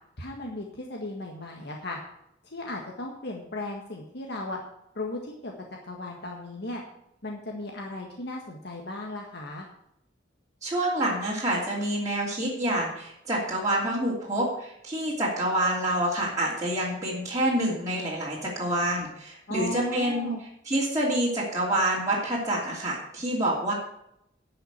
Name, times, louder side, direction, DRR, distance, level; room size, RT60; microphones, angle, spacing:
voice 1, 0.2-2.0 2.4-4.6 4.9-5.5 5.8-6.8 7.2-9.7 19.5-20.4, left 1 dB, 60° left, 0 dB, 1.6 m, -36 dB
voice 2, 10.6-20.3 20.6-23.7, right 1 dB, 20° right, -7 dB, 2.8 m, -27 dB
11.0 x 5.9 x 8.2 m, 0.76 s
head